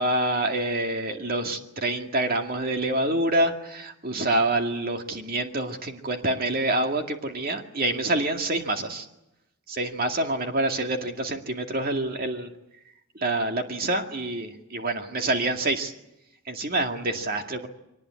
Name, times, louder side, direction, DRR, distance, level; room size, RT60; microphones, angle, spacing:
voice 1, 0.0-9.1 9.7-12.5 13.2-15.9 16.5-17.7, right 2 dB, 40° right, 4 dB, 2.2 m, -27 dB
24.0 x 19.5 x 9.7 m, 0.87 s
head